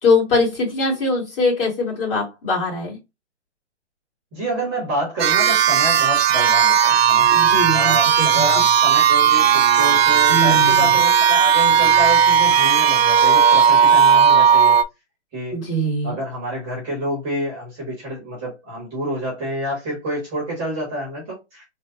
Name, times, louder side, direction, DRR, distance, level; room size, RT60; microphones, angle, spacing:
voice 1, 0.0-3.0 7.3-8.6 10.3-10.9 15.5-16.2, left 2 dB, 55° left, 2.0 m, -22 dB
voice 2, 4.3-7.3 7.7-14.8 15.3-15.6 16.0-21.6, right 1 dB, 10° right, 0.7 m, -28 dB
sound 1, 5.2-14.8, right 8 dB, 65° right, 0.4 m, -15 dB
3.2 x 2.0 x 3.6 m
hypercardioid pair, 170°, 34 cm